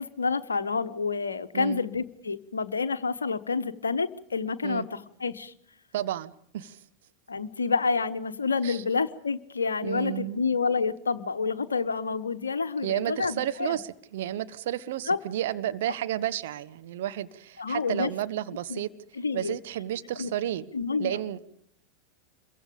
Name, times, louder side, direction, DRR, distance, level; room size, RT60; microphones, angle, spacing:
voice 1, 0.0-5.5 7.3-13.8 15.1-15.2 17.6-18.1 18.7-18.8 19.2-19.6 20.2-20.3 20.7-21.2, left 4 dB, 75° left, 9 dB, 1.0 m, -28 dB
voice 2, 5.9-6.8 8.6-8.8 9.8-10.4 12.8-18.9 19.3-20.7 21.0-21.4, right 12 dB, 55° right, 11 dB, 1.1 m, -32 dB
27.5 x 22.5 x 5.2 m, 0.71 s
figure-of-eight pair, 90°, 0 cm